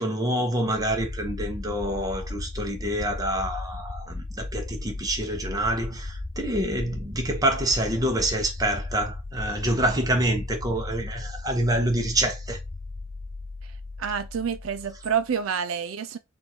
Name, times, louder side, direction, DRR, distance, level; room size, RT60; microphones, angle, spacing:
voice 1, 0.0-12.6, right 1 dB, 20° right, 0.9 m, -27 dB
sound 1, 0.6-15.4, left 2 dB, 10° left, 0.3 m, -36 dB
voice 2, 14.0-16.2, right 7 dB, 80° right, 0.4 m, -28 dB
3.6 x 2.6 x 4.3 m
head